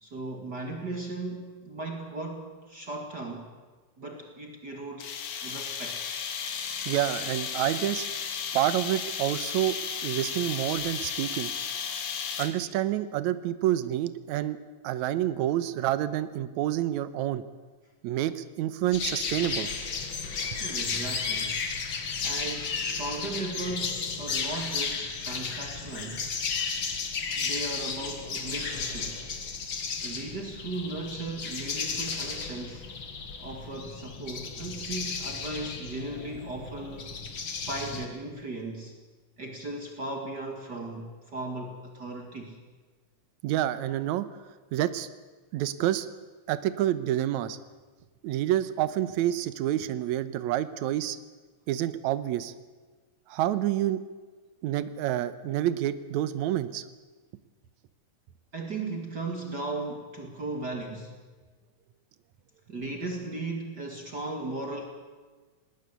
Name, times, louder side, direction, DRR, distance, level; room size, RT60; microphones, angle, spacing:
voice 1, 0.0-3.5 4.0-5.2 5.4-6.1 20.6-21.6 22.2-26.3 27.4-29.3 30.0-32.9 33.4-37.2 37.6-38.9 39.4-42.6 58.5-61.1 62.7-64.8, right 2 dB, 35° right, 2 dB, 2.4 m, -37 dB
sound 1, 5.0-12.7, left 7 dB, 65° left, 2.8 m, -34 dB
voice 2, 6.9-8.1 8.5-11.5 12.4-14.6 14.8-17.4 18.0-19.7 43.4-44.3 44.7-45.1 45.5-46.1 46.5-47.6 48.2-51.2 51.7-52.5 53.3-54.0 54.6-56.8, right 12 dB, 80° right, 13 dB, 2.2 m, -28 dB
sound 2, 18.9-38.1, left 5 dB, 45° left, 2.5 m, -34 dB
20.0 x 19.5 x 8.2 m, 1.4 s
omnidirectional pair, 3.3 m